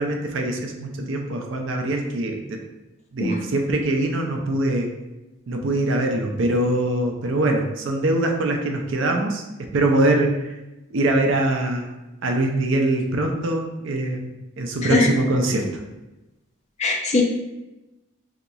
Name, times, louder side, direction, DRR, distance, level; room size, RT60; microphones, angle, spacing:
voice 1, 0.0-2.6 3.1-4.9 5.5-10.5 10.9-11.9 12.2-14.3 14.6-15.7, right 1 dB, 60° right, 2 dB, 0.5 m, -23 dB
voice 2, 16.8-17.2, left 3 dB, 30° left, 2 dB, 0.4 m, -20 dB
3.9 x 2.8 x 2.3 m, 1.0 s
head